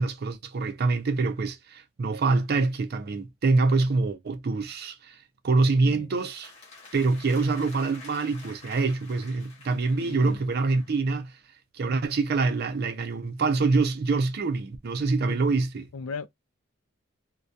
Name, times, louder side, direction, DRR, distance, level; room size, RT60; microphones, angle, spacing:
voice 1, 0.0-5.1 5.4-6.5 6.9-11.3 11.7-15.9, right 3 dB, 45° right, 0.4 m, -25 dB
voice 2, 5.8-6.1 10.0-10.4 15.3-15.4 15.9-16.3, left 5 dB, 75° left, 0.4 m, -37 dB
sound 1, 6.1-11.0, left 4 dB, 30° left, 0.8 m, -49 dB
2.2 x 2.1 x 2.6 m
head